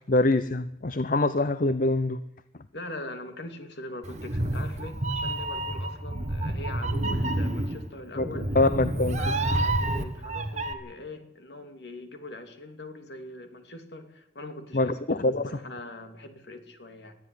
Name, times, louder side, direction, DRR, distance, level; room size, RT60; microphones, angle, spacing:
voice 1, 0.1-2.2 8.2-9.2 14.7-15.5, left 2 dB, 45° left, 13 dB, 0.7 m, -24 dB
voice 2, 2.7-8.6 8.9-17.2, left 1 dB, 65° left, 7 dB, 2.8 m, -42 dB
Meow, 4.0-10.7, right 1 dB, 40° right, 1.5 m, -29 dB
21.0 x 13.5 x 9.8 m, 0.85 s
head